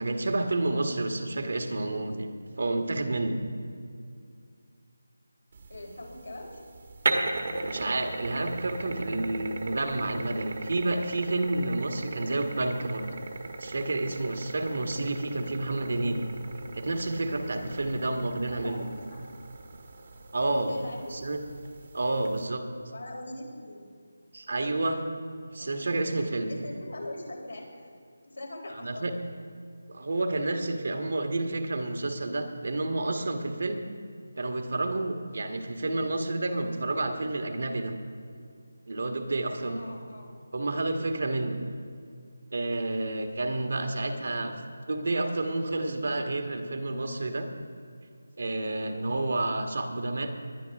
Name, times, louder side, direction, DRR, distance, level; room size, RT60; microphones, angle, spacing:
voice 1, 0.0-2.3 2.6-3.3 7.6-13.1 13.6-16.2 16.7-18.9 20.3-20.7 21.1-21.4 21.9-22.7 24.3-25.0 25.5-26.5 28.8-29.1 29.9-33.8 34.4-37.9 38.9-39.8 40.5-41.6 42.5-44.5 44.9-47.5 48.4-50.3, right 2 dB, 65° right, 5 dB, 1.5 m, -30 dB
sound 1, 5.5-22.5, right 3 dB, 45° right, 1.2 m, -38 dB
voice 2, 5.7-6.6 18.0-18.1 18.5-19.2 20.5-21.1 22.9-23.9 26.5-27.9 28.2-29.1 39.6-40.3 43.4-43.7 43.9-44.1, left 1 dB, 85° left, -2 dB, 3.8 m, -41 dB
20.0 x 10.5 x 3.5 m, 2.3 s
figure-of-eight pair, 160°, 0 cm